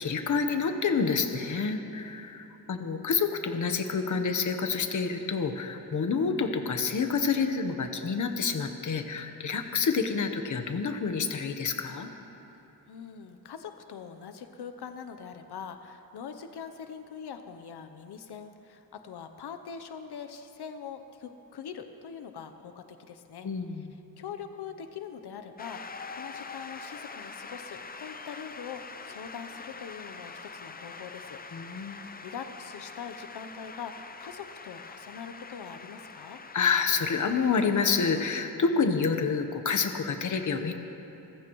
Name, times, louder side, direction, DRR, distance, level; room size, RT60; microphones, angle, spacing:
voice 1, 0.0-12.1 23.4-23.9 31.5-32.1 36.5-40.7, left 5 dB, 50° left, 6 dB, 1.0 m, -28 dB
voice 2, 12.9-23.5 24.2-31.4 31.9-36.4, left 7 dB, 85° left, 7 dB, 0.8 m, -43 dB
Shout / Cheering / Applause, 25.6-38.4, left 4 dB, 25° left, 0.5 m, -44 dB
29.0 x 15.0 x 3.1 m, 2.9 s
wide cardioid pair, 165°, 39 cm